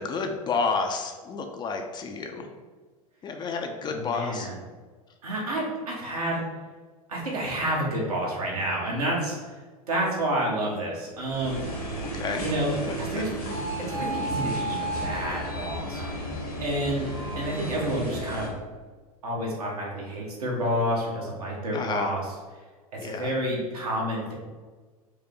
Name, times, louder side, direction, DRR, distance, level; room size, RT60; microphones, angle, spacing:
voice 1, 0.0-2.5 3.2-4.5 12.0-12.5 12.9-13.2 21.7-22.1 23.0-23.3, left 4 dB, 25° left, 4 dB, 0.4 m, -30 dB
voice 2, 3.9-4.6 5.2-6.4 7.1-9.4 9.9-11.6 12.4-13.3 13.9-16.3 16.6-17.1 17.3-18.5 19.2-22.2 23.0-24.3, right 1 dB, 75° right, -3 dB, 1.3 m, -29 dB
sound 1, 11.2-18.5, right 1 dB, 75° left, 1.4 m, -33 dB
4.9 x 2.2 x 3.8 m, 1.4 s
figure-of-eight pair, 85°, 19 cm